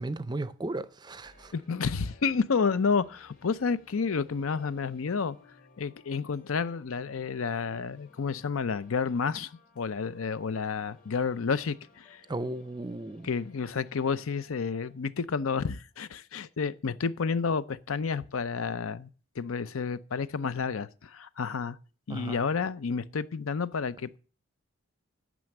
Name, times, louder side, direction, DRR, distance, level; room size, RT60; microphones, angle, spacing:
voice 1, 0.0-1.5 12.3-13.3 22.1-22.4, right 2 dB, 20° right, 0.5 m, -35 dB
sound 1, 1.2-16.1, left 3 dB, 45° left, 2.5 m, -59 dB
voice 2, 1.5-5.4 5.8-12.2 13.2-19.1 19.4-21.8 22.1-24.2, left 5 dB, 80° left, 0.6 m, -30 dB
9.2 x 6.3 x 7.8 m
head